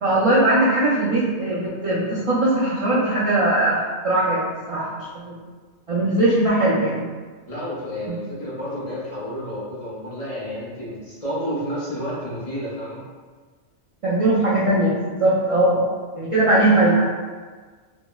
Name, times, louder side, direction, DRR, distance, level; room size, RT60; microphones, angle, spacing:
voice 1, 0.0-3.8 4.0-4.9 5.2-5.3 5.9-7.1 14.0-14.9 15.2-15.9 16.1-17.1, right 1 dB, 55° right, -8 dB, 0.3 m, -19 dB
voice 2, 7.5-13.0, equal, 40° left, -9 dB, 0.6 m, -30 dB
3.6 x 2.0 x 2.2 m, 1.4 s
omnidirectional pair, 1.2 m